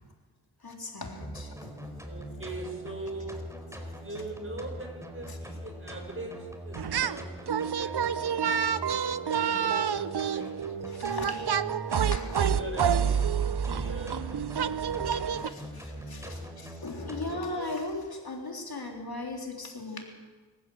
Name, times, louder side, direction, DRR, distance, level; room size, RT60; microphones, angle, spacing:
voice 1, 0.6-1.7 5.3-5.4 10.9-11.5 12.1-12.4 15.1-20.0, left 2 dB, 65° left, 1 dB, 3.6 m, -38 dB
sound 1, 1.2-17.5, equal, 5° right, 4.4 m, -42 dB
voice 2, 2.0-3.7 4.0-8.6 9.2-10.7 11.0-11.6 12.2-16.5 17.0-17.8, right 2 dB, 30° right, 3 dB, 6.5 m, -43 dB
sound 2, 6.8-7.2 7.5-15.5, right 8 dB, 75° right, 0.8 m, -28 dB
26.5 x 15.0 x 7.9 m, 1.3 s
wide cardioid pair, 55°, 40 cm